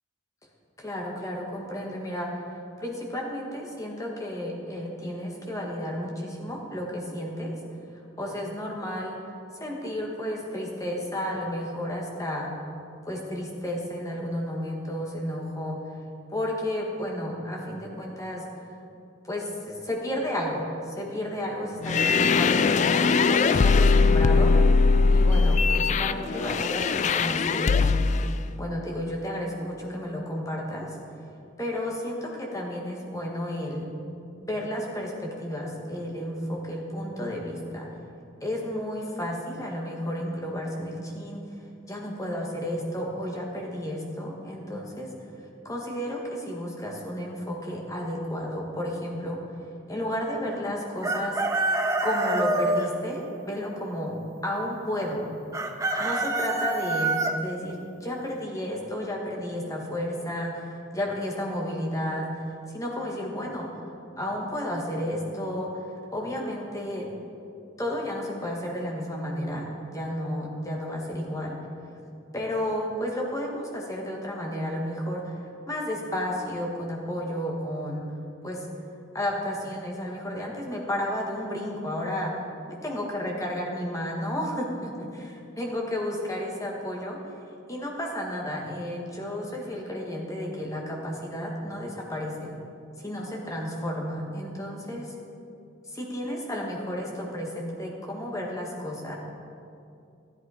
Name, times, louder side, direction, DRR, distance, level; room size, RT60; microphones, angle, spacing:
voice 1, 0.8-2.4 2.8-7.5 7.9-9.2 9.5-12.5 13.1-15.8 16.3-18.4 19.2-24.5 25.1-28.3 28.6-30.9 31.6-33.9 34.4-37.9 38.4-41.4 41.9-45.1 45.7-49.4 49.9-51.4 52.0-54.2 54.4-55.3 56.0-62.4 62.7-63.9 64.2-65.8 66.1-67.1 67.8-69.6 69.9-71.5 72.3-78.1 78.4-78.7 79.1-82.3 82.8-85.1 85.6-87.2 87.7-92.5 93.0-95.1 95.9-99.1, left 1 dB, 15° left, -1 dB, 1.7 m, -32 dB
sound 1, 21.8-28.3, left 4 dB, 35° left, 0.3 m, -21 dB
Chicken rooster, 51.0-52.9 55.5-57.3, right 2 dB, 15° right, 0.7 m, -26 dB
13.0 x 11.0 x 5.0 m, 2.6 s
head